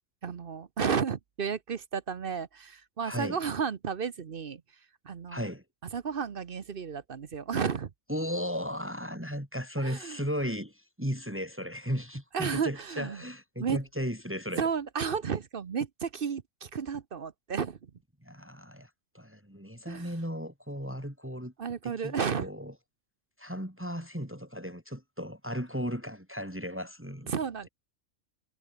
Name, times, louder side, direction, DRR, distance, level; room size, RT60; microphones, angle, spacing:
voice 1, 0.2-4.6 5.0-5.5 5.9-7.9 9.8-10.2 12.3-13.2 13.6-13.8 14.6-17.9 19.9-20.2 21.6-22.5 27.3-27.7, right 6 dB, 45° right, 1.0 m, -32 dB
voice 2, 3.0-3.4 5.3-5.6 8.1-14.7 18.2-18.9 19.1-21.5 21.8-22.1 22.4-22.7 23.4-27.3, equal, 10° right, 4.2 m, -35 dB
omnidirectional pair, 1.4 m